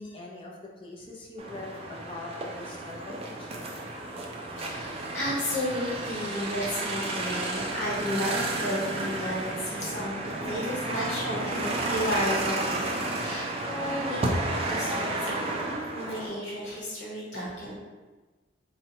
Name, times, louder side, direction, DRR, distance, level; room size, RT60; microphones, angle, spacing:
voice 1, 0.0-3.7, left 2 dB, 30° left, -3 dB, 0.5 m, -42 dB
sound 1, 1.4-16.3, right 2 dB, 30° right, 0.3 m, -32 dB
voice 2, 4.6-17.8, equal, 70° left, -7 dB, 1.0 m, -33 dB
3.9 x 2.1 x 2.8 m, 1.3 s
head